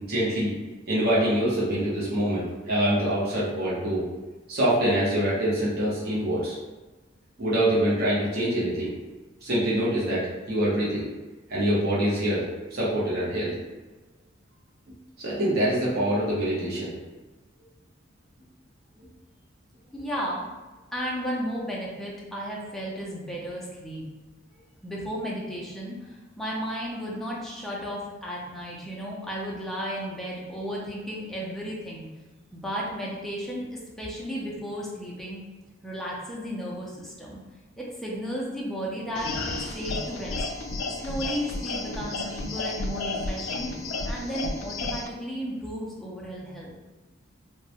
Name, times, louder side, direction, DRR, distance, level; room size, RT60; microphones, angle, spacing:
voice 1, 0.1-0.5 0.9-4.0 4.5-6.6 7.4-8.9 9.4-11.0 11.5-12.4 12.7-13.5 15.2-16.9, right 1 dB, 50° right, -7 dB, 0.7 m, -25 dB
voice 2, 19.9-20.5 20.9-24.0 24.8-32.1 32.5-35.4 35.8-37.4 37.8-40.5 41.0-43.7 44.0-46.7, equal, ahead, -5 dB, 0.4 m, -34 dB
sound 1, 39.1-45.1, left 3 dB, 80° left, 0.3 m, -32 dB
2.2 x 2.0 x 2.7 m, 1.2 s
head